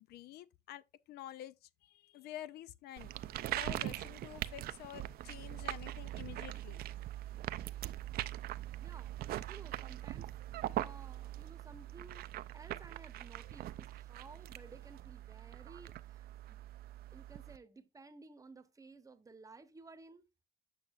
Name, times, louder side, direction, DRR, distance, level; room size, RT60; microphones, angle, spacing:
voice 1, 0.0-1.5 1.8-3.1 3.5-6.8, left 12 dB, 70° left, 0.5 m, -49 dB
sound 1, 3.0-17.6, right 14 dB, 65° right, 0.5 m, -42 dB
voice 2, 8.8-9.1 9.5-12.2 12.5-16.6 17.1-20.3, right 3 dB, 20° right, 0.9 m, -56 dB
8.1 x 6.1 x 2.4 m
cardioid pair, 110°, 17 cm